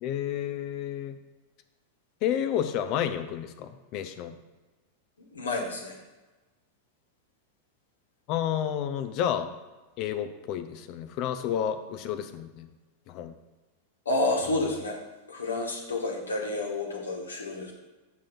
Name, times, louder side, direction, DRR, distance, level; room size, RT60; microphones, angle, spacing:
voice 1, 0.0-1.2 2.2-4.3 8.3-9.5 10.0-12.7 13.1-13.3, left 9 dB, 40° left, 9 dB, 0.5 m, -30 dB
voice 2, 5.3-6.0 14.0-15.0 15.3-17.7, left 2 dB, 70° left, 1 dB, 1.5 m, -29 dB
7.4 x 3.7 x 5.9 m, 1.2 s
figure-of-eight pair, 90°, 0 cm